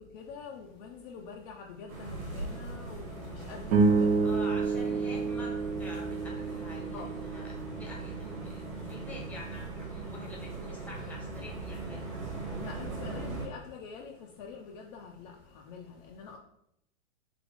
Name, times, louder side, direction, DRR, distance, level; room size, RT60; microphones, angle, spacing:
voice 1, 0.0-4.5 6.9-7.1 12.6-16.4, left 5 dB, 35° left, 0.4 m, -46 dB
sound 1, 1.9-13.5, right 2 dB, 90° right, 1.5 m, -40 dB
sound 2, 3.7-8.2, right 4 dB, 25° right, 0.4 m, -29 dB
voice 2, 4.2-5.5 5.8-12.2, left 1 dB, 5° left, 0.8 m, -47 dB
3.3 x 3.0 x 3.6 m
hypercardioid pair, 115°, 40 cm